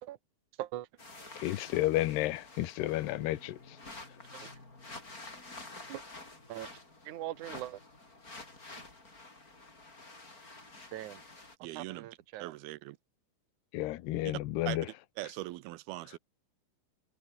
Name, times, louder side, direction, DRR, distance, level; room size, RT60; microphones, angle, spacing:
sound 1, 1.0-11.6, left 2 dB, 20° left, 5.0 m, -49 dB
voice 1, 1.4-3.6 13.7-14.9, left 16 dB, 80° left, 3.2 m, -31 dB
voice 2, 7.1-7.8 10.9-11.2 11.8-12.5, right 14 dB, 60° right, 2.5 m, -41 dB
voice 3, 11.6-12.1 12.4-13.0 14.3-14.4 14.7-16.2, right 17 dB, 80° right, 2.4 m, -41 dB
omnidirectional pair, 4.8 m